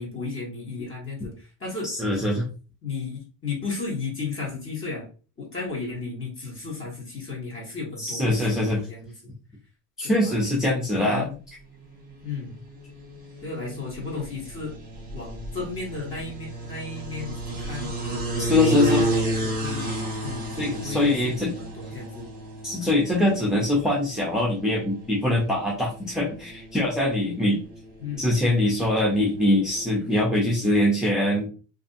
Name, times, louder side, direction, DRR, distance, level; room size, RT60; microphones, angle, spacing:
voice 1, 0.0-1.9 2.8-5.1 5.4-9.3 10.0-10.4 11.0-11.4 12.2-12.6 13.4-14.8 15.1-17.9 18.6-20.0 20.2-22.2 28.0-28.3, left 4 dB, 30° left, -2 dB, 1.4 m, -34 dB
voice 2, 1.8-2.5 8.0-8.8 10.0-11.3 18.4-19.0 20.6-21.5 22.6-27.6 28.2-31.5, left 1 dB, ahead, -3 dB, 0.4 m, -23 dB
sound 1, 11.9-29.9, right 1 dB, 20° right, 1.0 m, -33 dB
2.6 x 2.6 x 2.5 m, 0.36 s
cardioid pair, 140°, 43 cm